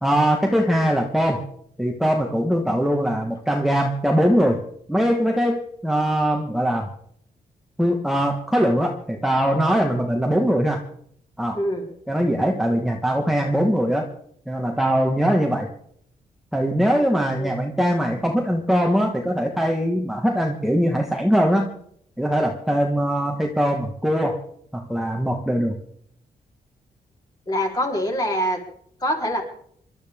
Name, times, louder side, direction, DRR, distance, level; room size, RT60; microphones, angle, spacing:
voice 1, 0.0-1.4 1.8-4.6 4.9-6.9 7.8-10.8 11.4-11.6 12.1-14.1 14.5-15.7 16.5-21.7 22.2-24.4 24.7-25.8, equal, ahead, 1 dB, 1.4 m, -21 dB
voice 2, 11.5-11.9 16.9-17.0 17.3-17.6 27.5-28.6 29.0-29.4, equal, 25° left, 0 dB, 3.9 m, -24 dB
27.5 x 12.5 x 3.6 m, 0.66 s
wide cardioid pair, 160°, 16 cm